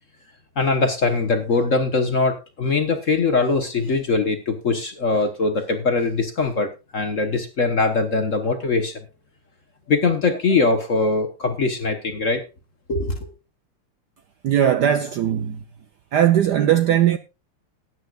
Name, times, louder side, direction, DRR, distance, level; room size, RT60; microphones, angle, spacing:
voice 1, 0.6-9.0 9.9-12.4 12.9-13.3, left 3 dB, 45° left, 1.1 m, -22 dB
voice 2, 14.4-15.6 16.1-17.2, right 10 dB, 70° right, 1.0 m, -18 dB
19.0 x 9.3 x 2.4 m
omnidirectional pair, 2.4 m